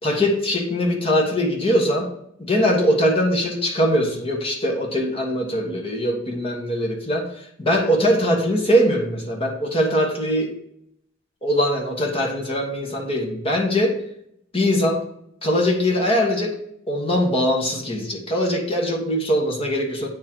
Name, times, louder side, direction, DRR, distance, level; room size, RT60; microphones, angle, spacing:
voice 1, 0.0-2.1 2.4-10.6 11.4-14.0 14.5-15.0 15.4-16.5 16.9-20.1, equal, 30° left, 0 dB, 1.4 m, -21 dB
8.6 x 3.8 x 4.5 m, 0.74 s
head